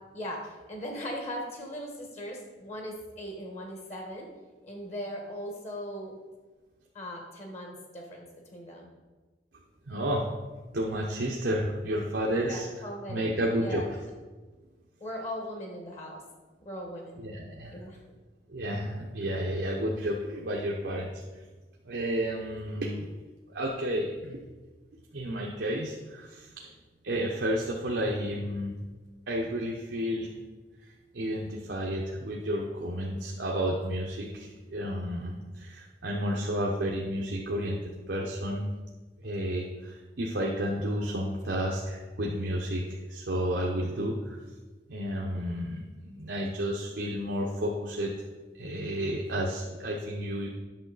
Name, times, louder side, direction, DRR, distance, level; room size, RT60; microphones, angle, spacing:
voice 1, 0.7-4.3 4.6-6.2 6.9-8.9 12.3-14.0 15.0-16.2 16.6-17.2 17.7-18.0, equal, 40° left, 1 dB, 1.4 m, -39 dB
voice 2, 9.9-10.2 10.7-12.7 13.1-13.8 17.2-17.7 18.5-21.2 21.8-23.1 23.5-24.4 25.1-26.7 27.0-28.8 29.3-30.3 30.8-37.8 38.1-38.7 39.2-44.4 44.9-48.1 48.6-50.5, equal, 80° right, -2 dB, 0.9 m, -31 dB
8.9 x 6.3 x 4.0 m, 1.3 s
head